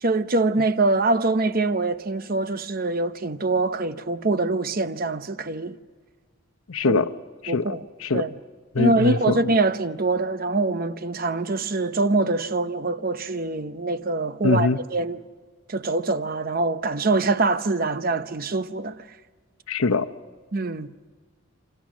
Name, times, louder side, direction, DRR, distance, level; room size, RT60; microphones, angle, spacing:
voice 1, 0.0-5.8 6.8-7.0 7.5-7.8 8.1-8.3 8.8-15.2 15.7-19.0 20.5-20.9, right 3 dB, 45° right, 0.8 m, -24 dB
voice 2, 6.7-7.1 7.4-8.2 8.7-9.4 14.4-14.8 19.7-20.1, left 3 dB, 80° left, 0.9 m, -23 dB
28.0 x 26.0 x 6.2 m
head